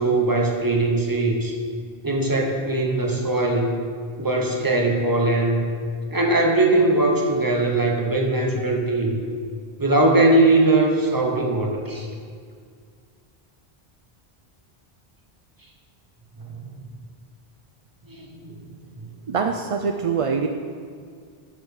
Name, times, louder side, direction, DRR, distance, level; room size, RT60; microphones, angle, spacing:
voice 1, 0.0-1.5 2.0-3.8 4.2-5.6 6.1-9.2 9.8-12.1 16.4-16.6 18.1-18.6, right 2 dB, 20° right, 1 dB, 1.1 m, -20 dB
voice 2, 19.3-20.5, right 5 dB, 55° right, 5 dB, 0.4 m, -24 dB
12.0 x 7.7 x 3.7 m, 2.1 s
omnidirectional pair, 1.0 m